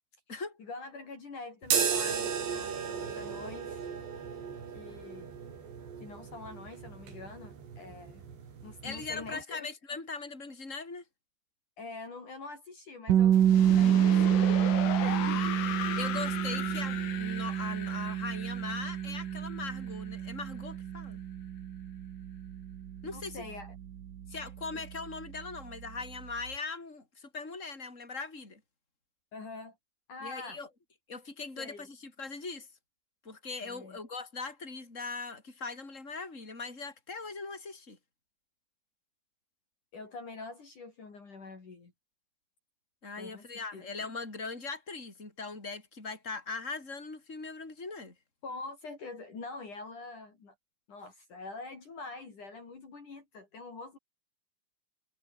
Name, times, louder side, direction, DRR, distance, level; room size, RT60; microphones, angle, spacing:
voice 1, 0.6-3.9 4.7-5.3 6.0-8.2 8.6-9.7 11.8-14.4 15.0-15.4 23.1-23.8 29.3-29.8 30.1-30.6 31.6-31.9 33.6-34.0 39.9-41.9 43.2-43.9 48.4-50.5 50.9-54.0, left 3 dB, 45° left, 6.1 m, -45 dB
sound 1, 1.6-9.4, right 7 dB, 80° right, 6.8 m, -35 dB
voice 2, 8.8-11.0 15.9-21.2 23.0-23.4 24.3-28.6 30.2-30.7 31.1-32.7 33.2-38.0 43.0-48.1, left 4 dB, 15° left, 6.4 m, -40 dB
sound 2, 13.1-24.9, right 10 dB, 55° right, 3.2 m, -28 dB
sound 3, 13.3-20.2, left 9 dB, 75° left, 5.0 m, -38 dB
omnidirectional pair, 4.9 m